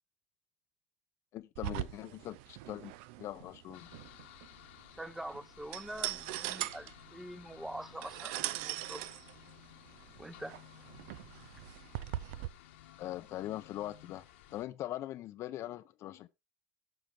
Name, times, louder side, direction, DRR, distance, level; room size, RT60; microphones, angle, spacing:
voice 1, 1.3-2.9 3.2-3.9 13.0-14.2 14.5-16.3, left 14 dB, 50° left, 0.6 m, -41 dB
sound 1, 1.5-12.5, right 15 dB, 75° right, 0.6 m, -41 dB
sound 2, 3.7-14.6, left 12 dB, 90° left, 1.4 m, -56 dB
voice 2, 4.9-9.1 10.2-10.6, right 1 dB, 5° right, 0.8 m, -44 dB
13.5 x 5.9 x 3.5 m
supercardioid pair, 115°, 6 cm